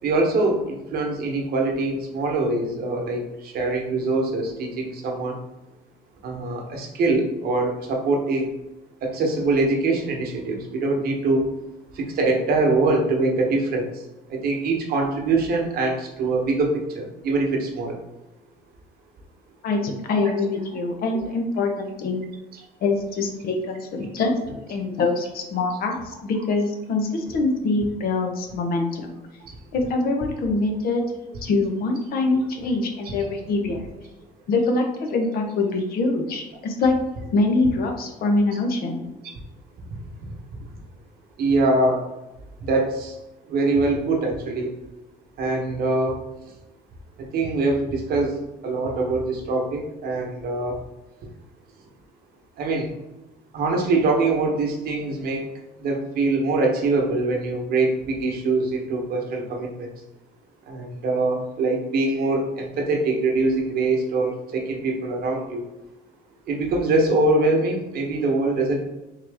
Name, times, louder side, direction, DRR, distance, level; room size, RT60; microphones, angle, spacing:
voice 1, 0.0-5.4 6.2-8.5 9.0-11.5 11.9-14.0 14.3-18.0 20.2-20.4 21.1-21.2 29.4-29.5 41.4-42.0 42.6-43.2 43.5-44.7 45.4-46.2 47.2-50.8 52.6-52.9 53.5-55.5 55.8-59.9 60.7-65.6 66.5-68.9, right 2 dB, 65° right, 1 dB, 1.0 m, -23 dB
voice 2, 19.6-22.2 22.8-29.1 29.7-31.0 31.4-33.9 34.5-37.0 37.3-39.0, left 3 dB, 65° left, 3 dB, 0.8 m, -24 dB
3.8 x 3.0 x 3.4 m, 1.0 s
cardioid pair, 110°, 17 cm